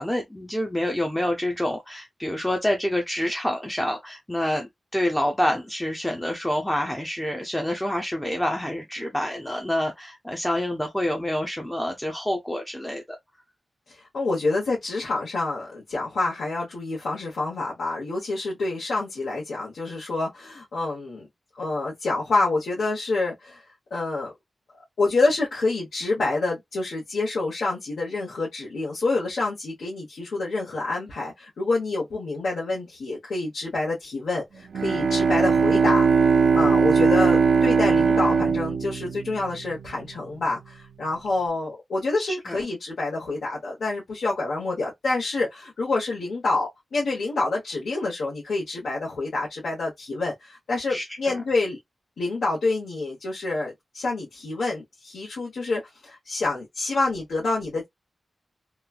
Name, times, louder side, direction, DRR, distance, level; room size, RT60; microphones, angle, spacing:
voice 1, 0.0-13.2 42.5-42.6 50.9-51.4, left 1 dB, 5° left, 0.5 m, -27 dB
voice 2, 13.9-21.3 21.6-23.6 23.9-24.3 25.0-36.1 36.5-51.8 52.2-57.9, left 3 dB, 80° left, 1.1 m, -27 dB
Bowed string instrument, 34.7-39.9, right 5 dB, 80° right, 0.4 m, -20 dB
3.0 x 2.3 x 2.4 m
wide cardioid pair, 175°, 0 cm